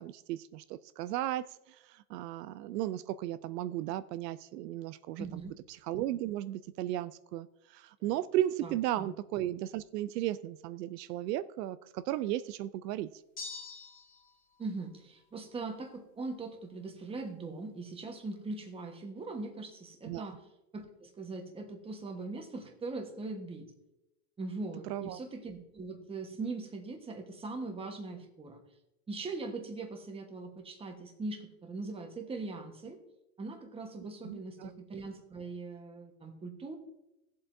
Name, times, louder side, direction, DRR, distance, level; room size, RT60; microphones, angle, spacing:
voice 1, 0.0-5.4 5.7-13.2 20.1-20.3 24.8-25.2 34.0-34.7, right 13 dB, 80° right, 14 dB, 0.6 m, -35 dB
voice 2, 5.2-5.5 8.0-8.1 8.6-9.1 14.6-20.4 20.7-23.7 24.4-28.6 29.1-33.0 33.4-36.8, right 3 dB, 10° right, 4 dB, 1.2 m, -41 dB
sound 1, 13.4-14.3, left 4 dB, 20° left, 1.2 m, -44 dB
16.5 x 7.6 x 2.7 m, 0.91 s
supercardioid pair, 145°, 47 cm